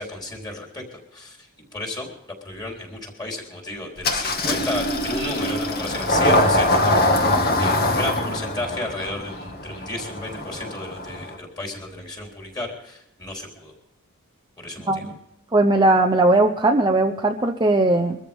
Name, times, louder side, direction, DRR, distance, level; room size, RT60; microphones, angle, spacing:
voice 1, 0.0-2.1 2.4-13.7 14.6-15.1, left 1 dB, 20° left, 0 dB, 3.9 m, -33 dB
Engine starting, 4.0-11.4, left 1 dB, 45° left, 2.0 m, -23 dB
voice 2, 15.5-18.2, right 2 dB, 20° right, 3 dB, 0.7 m, -18 dB
23.5 x 14.0 x 3.6 m, 0.80 s
head